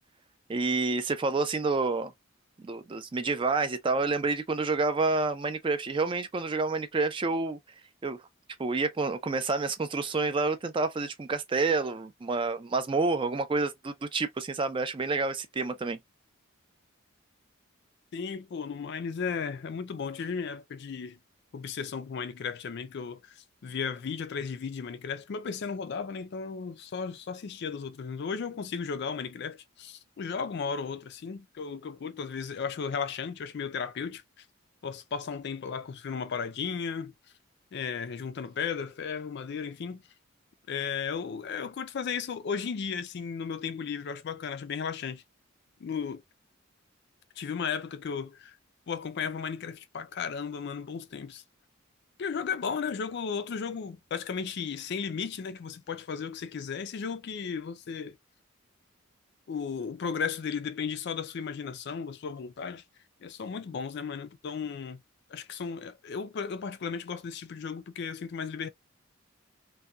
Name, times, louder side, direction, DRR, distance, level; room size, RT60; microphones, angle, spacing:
voice 1, 0.5-2.1 2.6-7.6 8.0-8.2 8.6-16.0, right 3 dB, 25° right, 0.3 m, -28 dB
voice 2, 18.1-21.2 21.5-34.4 34.8-37.1 37.7-40.0 40.7-45.2 45.8-46.2 47.4-48.6 48.9-51.4 52.2-58.2 59.5-62.8 63.2-65.0 65.3-68.7, left 6 dB, 55° left, 0.4 m, -35 dB
2.7 x 2.2 x 2.3 m
head